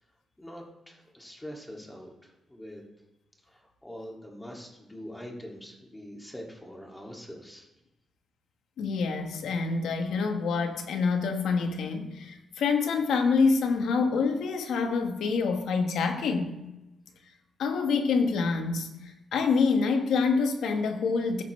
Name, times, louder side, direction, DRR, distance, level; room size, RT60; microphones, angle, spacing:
voice 1, 0.4-2.8 3.5-7.7, equal, 10° left, 0 dB, 2.1 m, -44 dB
voice 2, 8.8-16.6 17.6-21.4, left 4 dB, 85° left, 5 dB, 1.1 m, -26 dB
14.0 x 5.6 x 3.1 m, 0.97 s
cardioid pair, 100°, 0 cm